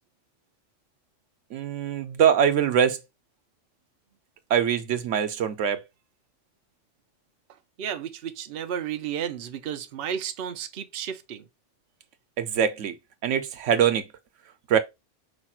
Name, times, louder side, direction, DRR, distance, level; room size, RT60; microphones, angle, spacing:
voice 1, 1.5-3.0 4.5-5.8 12.4-12.9 13.2-14.1 14.7-14.8, right 8 dB, 85° right, 1.0 m, -23 dB
voice 2, 7.8-11.5, right 9 dB, 60° right, 0.8 m, -33 dB
5.1 x 2.4 x 4.2 m
omnidirectional pair, 1.2 m